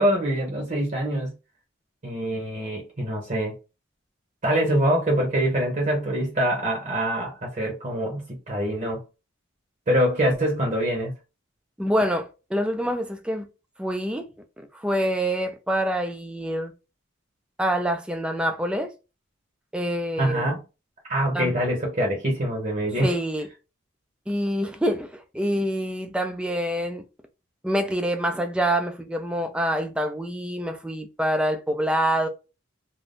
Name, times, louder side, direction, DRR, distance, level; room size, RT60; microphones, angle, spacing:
voice 1, 0.0-1.3 2.0-3.5 4.4-9.0 9.9-11.1 20.2-20.6 21.1-23.1, right 1 dB, 40° right, 0.9 m, -24 dB
voice 2, 11.8-13.5 13.8-14.3 14.6-16.7 17.6-18.9 19.7-20.5 21.3-21.5 23.0-23.5 24.3-27.0 27.6-32.3, equal, 5° right, 0.4 m, -26 dB
2.5 x 2.2 x 3.5 m
head